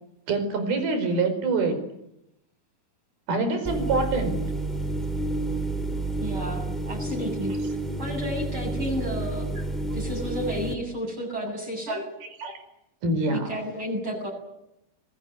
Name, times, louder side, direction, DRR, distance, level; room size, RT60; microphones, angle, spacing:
voice 1, 0.3-1.8 3.3-4.4 11.9-12.0 12.4-12.6 13.0-13.6, right 3 dB, 85° right, 8 dB, 6.7 m, -25 dB
sound 1, 3.6-10.7, right 2 dB, ahead, 2.6 m, -30 dB
voice 2, 6.2-7.5 8.0-9.5 9.9-12.0 13.3-14.3, equal, 30° right, 0 dB, 8.6 m, -32 dB
26.0 x 20.5 x 9.6 m, 0.83 s
omnidirectional pair, 4.2 m